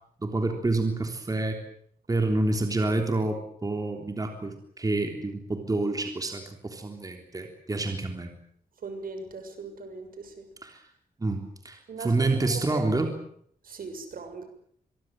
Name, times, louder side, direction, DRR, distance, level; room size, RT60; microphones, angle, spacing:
voice 1, 0.2-1.6 2.1-8.3 10.6-10.8 11.2-13.2, right 2 dB, 25° right, 4 dB, 3.5 m, -28 dB
voice 2, 8.8-10.5 11.9-12.8 13.6-14.5, right 4 dB, 65° right, 7 dB, 6.5 m, -39 dB
25.5 x 23.0 x 7.8 m, 0.64 s
wide cardioid pair, 135°, 16 cm